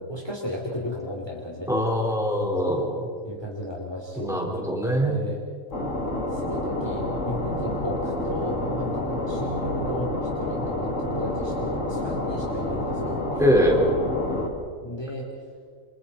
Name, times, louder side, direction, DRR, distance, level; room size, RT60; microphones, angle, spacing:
voice 1, 0.1-1.7 3.2-4.4 5.0-5.4 6.3-13.2 14.8-15.3, equal, 20° left, -2 dB, 3.0 m, -34 dB
voice 2, 1.7-3.1 4.2-5.2 13.4-13.8, equal, ahead, -1 dB, 4.3 m, -23 dB
sound 1, 5.7-14.5, left 1 dB, 70° left, 3.1 m, -28 dB
30.0 x 27.0 x 4.2 m, 2.1 s
omnidirectional pair, 1.4 m